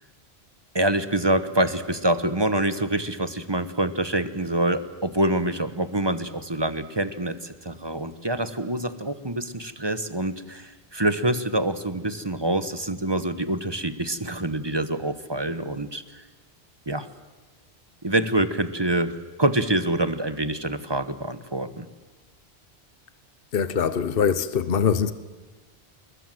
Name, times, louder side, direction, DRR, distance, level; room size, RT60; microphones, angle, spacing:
voice 1, 0.7-16.2 16.9-17.1 18.0-19.1 19.4-21.9, right 1 dB, 25° right, 1.2 m, -26 dB
voice 2, 23.5-25.1, left 7 dB, 65° left, 1.2 m, -23 dB
27.5 x 21.0 x 7.8 m
omnidirectional pair, 1.0 m